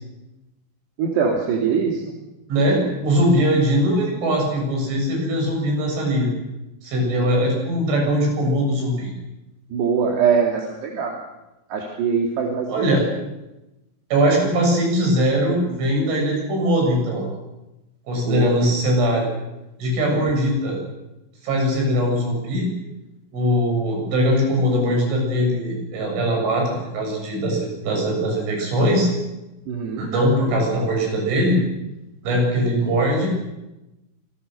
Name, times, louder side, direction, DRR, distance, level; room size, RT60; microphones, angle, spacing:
voice 1, 1.0-2.0 2.7-2.9 7.2-7.3 9.7-11.2 11.7-12.9 18.3-18.5 29.7-30.1, right 6 dB, 65° right, 0 dB, 4.4 m, -22 dB
voice 2, 2.5-6.3 6.8-9.1 12.7-13.0 14.1-17.3 18.1-19.3 19.8-20.8 21.4-22.7 23.3-29.1 30.0-31.6 32.2-33.3, equal, 80° right, 1 dB, 10.0 m, -21 dB
28.0 x 21.0 x 6.6 m, 0.98 s
omnidirectional pair, 5.4 m